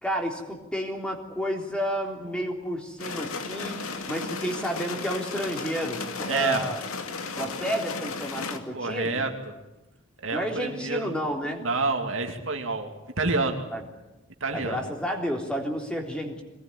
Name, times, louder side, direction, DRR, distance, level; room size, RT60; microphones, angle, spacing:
voice 1, 0.0-3.8 4.1-6.8 7.4-9.2 10.3-11.6 13.7-13.8 14.5-16.4, equal, 5° left, 1 dB, 3.5 m, -31 dB
sound 1, 3.0-8.6, left 4 dB, 85° left, 2.4 m, -34 dB
voice 2, 6.3-6.6 8.7-9.5 10.2-11.1 11.6-12.9 13.2-13.7 14.4-14.8, right 3 dB, 60° right, 3 dB, 2.8 m, -28 dB
23.0 x 19.5 x 10.0 m, 1.0 s
head